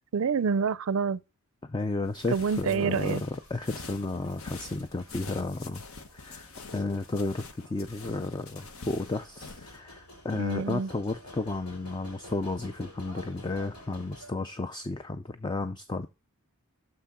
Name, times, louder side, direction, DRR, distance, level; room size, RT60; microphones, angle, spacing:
voice 1, 0.1-1.2 2.3-3.2 10.3-10.9, right 5 dB, 70° right, 0.4 m, -27 dB
voice 2, 1.7-5.8 6.1-16.1, left 2 dB, 20° left, 0.3 m, -33 dB
sound 1, 2.0-9.8, left 4 dB, 70° left, 1.0 m, -46 dB
sound 2, 2.9-14.3, equal, 90° left, 2.9 m, -51 dB
6.5 x 5.9 x 4.1 m
head